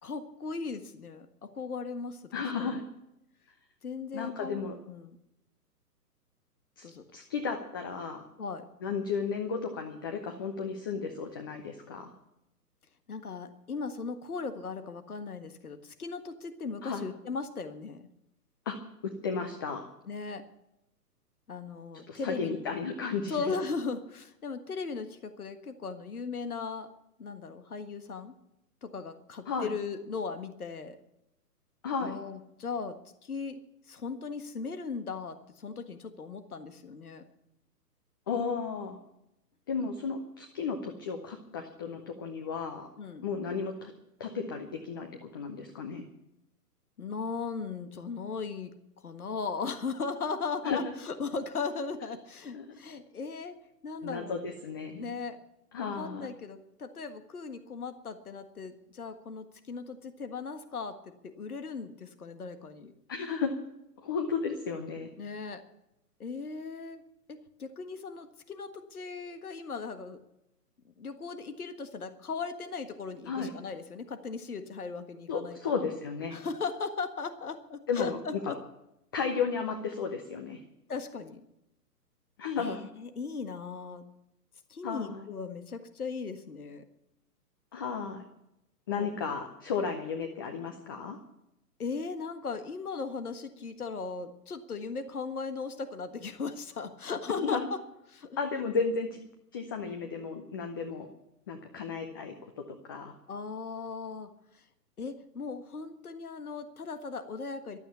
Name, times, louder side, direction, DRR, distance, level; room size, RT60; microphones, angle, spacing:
voice 1, 0.0-2.8 3.8-5.2 6.8-7.0 8.4-8.7 13.1-18.1 20.1-20.4 21.5-22.6 23.3-26.9 27.2-28.3 28.8-31.0 32.0-33.6 33.9-37.2 43.0-43.3 47.0-53.6 53.8-54.4 55.0-55.4 55.8-62.9 65.2-65.6 66.2-67.0 67.3-70.2 71.0-75.8 76.3-78.6 80.9-81.5 82.6-84.0 84.7-86.8 89.0-89.1 91.8-97.8 98.1-98.4 103.3-104.6 105.0-107.8, left 4 dB, 65° left, 9 dB, 1.6 m, -38 dB
voice 2, 2.3-2.8 4.1-4.8 6.8-8.2 8.8-12.1 16.8-17.0 18.7-18.8 19.0-19.8 22.1-23.4 29.5-29.7 31.8-32.2 38.3-39.0 39.7-42.9 43.2-43.9 44.2-46.1 50.6-50.9 52.5-52.6 54.0-55.1 55.7-56.3 63.1-63.5 64.0-65.1 73.3-73.5 75.3-76.4 77.9-78.2 78.5-78.6 79.1-80.6 82.4-82.8 84.8-85.3 87.7-88.2 88.9-91.2 97.3-97.7 98.4-99.2 99.5-101.1 101.5-103.1, left 5 dB, 15° left, 5 dB, 0.6 m, -34 dB
15.0 x 12.5 x 6.9 m, 0.86 s
figure-of-eight pair, 125°, 47 cm